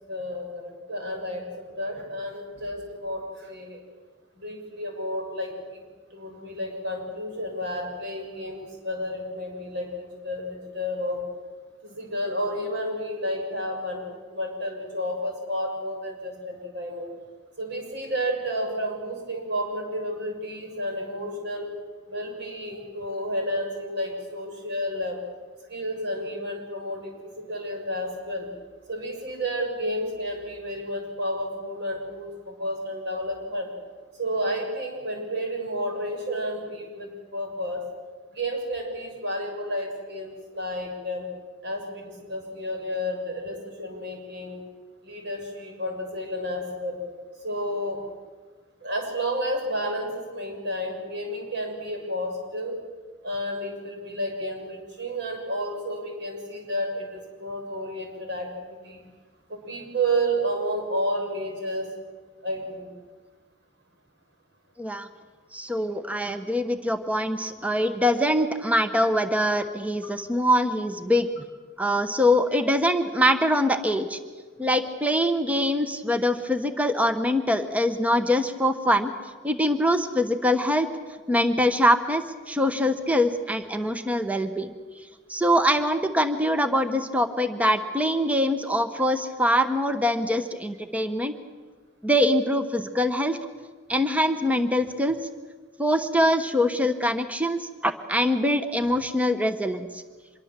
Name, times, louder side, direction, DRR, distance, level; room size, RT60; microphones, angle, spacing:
voice 1, 0.1-3.8 4.4-5.8 6.1-11.2 11.8-14.0 14.3-17.1 17.6-21.7 22.1-25.2 25.7-28.5 28.9-33.7 34.1-37.8 38.3-41.3 41.6-44.6 45.0-47.0 47.4-48.0 48.8-52.8 53.2-59.0 59.5-61.9 62.4-62.9, equal, 60° right, 2 dB, 6.7 m, -31 dB
voice 2, 65.5-71.3 71.8-74.2 74.6-79.1 79.4-80.9 81.3-84.7 85.3-91.3 92.0-93.4 93.9-95.2 95.8-100.0, equal, 10° right, 9 dB, 1.0 m, -23 dB
25.5 x 22.5 x 7.5 m, 1.4 s
head